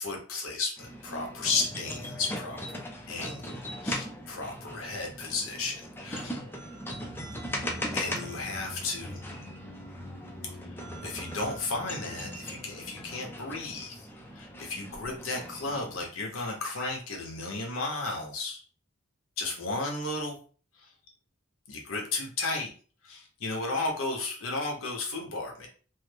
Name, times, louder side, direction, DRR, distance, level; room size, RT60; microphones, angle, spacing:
voice 1, 0.0-6.3 7.9-9.2 11.0-13.9 14.4-18.6 19.4-20.4 21.7-22.7 23.0-25.7, left 3 dB, 85° left, 0 dB, 0.8 m, -34 dB
sound 1, 0.8-16.1, equal, 10° left, 0.4 m, -39 dB
sound 2, 6.8-13.2 13.5-13.6, equal, 45° left, 0.7 m, -47 dB
3.2 x 2.0 x 3.3 m, 0.40 s
head